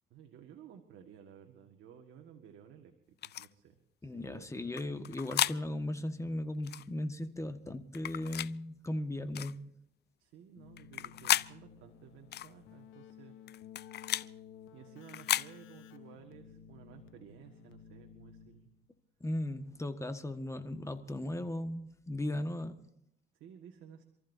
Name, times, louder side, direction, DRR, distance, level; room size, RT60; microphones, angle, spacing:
voice 1, 0.1-4.7 10.2-13.4 14.7-18.7 23.4-24.0, right 9 dB, 80° right, 4 dB, 1.7 m, -55 dB
sound 1, 3.2-3.5 4.8-5.6 6.6-6.9 7.9-8.5 9.3-9.5 10.8-11.5 12.3-12.5 13.5-14.3 15.1-15.5, left 12 dB, 55° left, 0.5 m, -33 dB
voice 2, 4.0-9.7 19.2-22.9, left 1 dB, 15° left, 8 dB, 1.5 m, -37 dB
Keyboard (musical), 10.6-18.9, left 8 dB, 80° left, 1.1 m, -54 dB
28.0 x 14.5 x 2.7 m, 0.78 s
cardioid pair, 90°, 20 cm